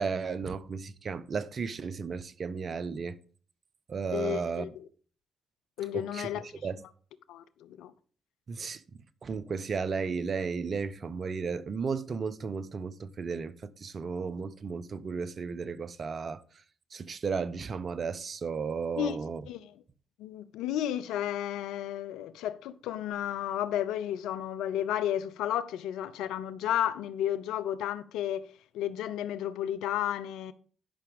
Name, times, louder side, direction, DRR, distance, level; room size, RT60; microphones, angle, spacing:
voice 1, 0.0-3.2 3.9-4.7 5.9-6.3 6.6-6.8 8.5-8.8 9.2-16.4 16.9-19.4, right 5 dB, 50° right, 0.8 m, -34 dB
voice 2, 4.1-4.8 5.8-6.4 7.3-7.9 19.0-19.8 20.2-28.5 28.7-30.5, left 11 dB, 80° left, 0.6 m, -32 dB
11.5 x 5.9 x 5.2 m
hypercardioid pair, 50°, 0 cm